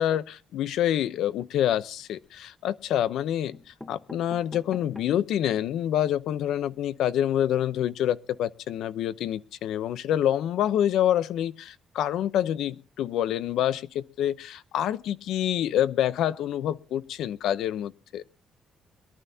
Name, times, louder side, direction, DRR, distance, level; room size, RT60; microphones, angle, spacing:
voice 1, 0.0-3.6 3.9-18.2, left 11 dB, 85° left, 0.7 m, -27 dB
sound 1, 1.9-2.4 3.1-3.2 3.5-5.3 5.8-5.9 6.1-6.2 6.5-6.7, left 2 dB, 10° left, 1.0 m, -47 dB
22.5 x 12.5 x 2.8 m
cardioid pair, 160°, 0 cm